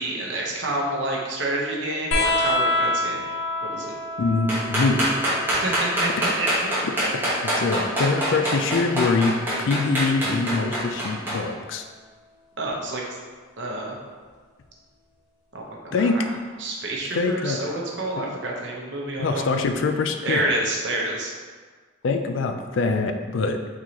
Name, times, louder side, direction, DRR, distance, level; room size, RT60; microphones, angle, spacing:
voice 1, 0.0-3.2 3.6-3.9 5.5-6.8 12.6-13.0 13.6-14.0 15.5-16.2 16.6-19.4 20.2-21.3, right 2 dB, 60° right, -2 dB, 0.8 m, -28 dB
sound 1, 2.1-9.2 10.5-11.4 12.7-12.8, left 2 dB, 85° left, 0.8 m, -29 dB
voice 2, 4.2-5.4 7.3-9.3 9.6-11.8 15.9-16.2 17.1-17.6 18.2-18.3 19.2-20.4 22.0-23.6, left 4 dB, 70° left, 6 dB, 0.4 m, -24 dB
sound 2, 4.5-11.3, right 1 dB, 10° right, 1.2 m, -24 dB
4.6 x 4.0 x 2.9 m, 1.5 s
head